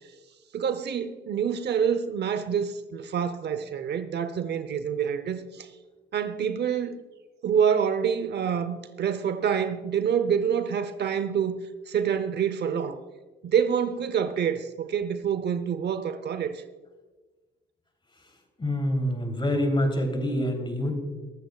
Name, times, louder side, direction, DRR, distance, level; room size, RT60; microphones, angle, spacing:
voice 1, 0.5-5.7 6.1-7.0 7.4-11.6 11.9-13.0 13.4-16.6, right 7 dB, 60° right, 0.8 m, -27 dB
voice 2, 18.6-20.9, equal, 25° left, 3.2 m, -26 dB
22.5 x 13.0 x 2.4 m
cardioid pair, 90°, 20 cm